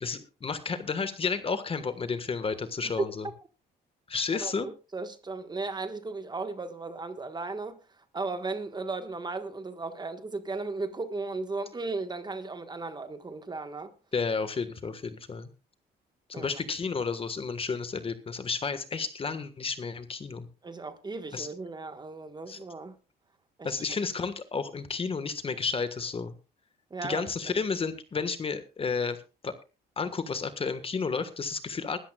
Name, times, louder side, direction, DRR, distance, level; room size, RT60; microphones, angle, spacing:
voice 1, 0.0-3.3 4.1-4.7 14.1-15.5 16.3-20.5 21.3-21.5 22.5-22.6 23.6-26.3 27.0-29.5 30.0-32.0, left 5 dB, 30° left, 1.5 m, -32 dB
voice 2, 4.4-13.9 16.3-16.6 20.6-23.0 23.6-23.7 26.9-27.6, right 3 dB, 25° right, 1.4 m, -36 dB
21.0 x 13.0 x 2.4 m
cardioid pair, 100°, 18 cm